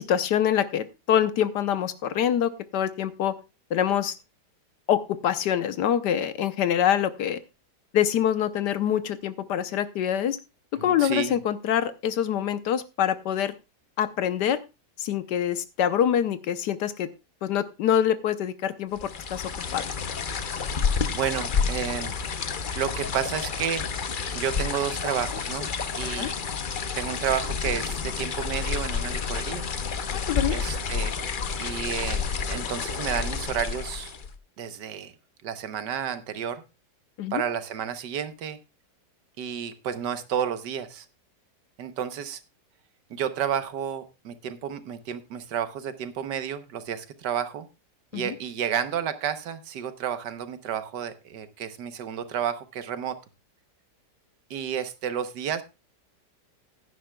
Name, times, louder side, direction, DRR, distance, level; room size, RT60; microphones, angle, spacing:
voice 1, 0.0-3.3 3.7-4.1 4.9-7.4 7.9-10.4 10.8-13.5 14.0-14.6 15.0-17.1 17.4-19.0 19.3-19.8 26.0-26.3 30.1-30.6 37.2-37.4 48.1-48.3, left 9 dB, 80° left, 12 dB, 1.4 m, -25 dB
voice 2, 10.8-11.4 21.1-22.4 22.7-23.9 24.3-25.7 26.0-26.4 26.9-29.7 30.5-31.1 31.6-32.2 32.5-34.1 34.6-35.1 35.4-36.6 37.3-38.6 39.4-41.0 41.8-42.4 43.1-47.7 48.1-53.2 54.5-55.6, right 8 dB, 80° right, 10 dB, 1.6 m, -31 dB
sound 1, 19.0-34.4, left 6 dB, 50° left, 0.6 m, -30 dB
16.0 x 10.0 x 2.3 m, 0.27 s
omnidirectional pair, 1.8 m